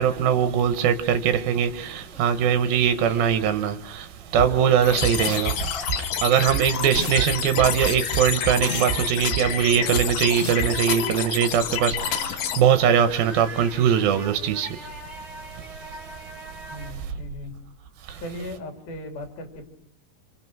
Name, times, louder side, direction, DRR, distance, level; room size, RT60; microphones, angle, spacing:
voice 1, 0.0-17.1 18.0-18.2, right 8 dB, 90° right, 3.0 m, -22 dB
Laughter, 1.9-3.6 4.0-16.9, equal, ahead, 6.8 m, -42 dB
sound 1, 4.4-4.5 5.0-5.5 5.9-6.0 6.5-6.6 6.9-7.2 7.6-9.0 9.3-9.4 9.9-10.0 10.3-10.7, right 6 dB, 35° right, 4.6 m, -28 dB
sound 2, 4.8-12.6, left 9 dB, 65° left, 2.4 m, -29 dB
voice 2, 16.7-17.5 18.2-19.6, left 1 dB, 85° left, 4.8 m, -37 dB
27.0 x 26.0 x 6.1 m
omnidirectional pair, 4.2 m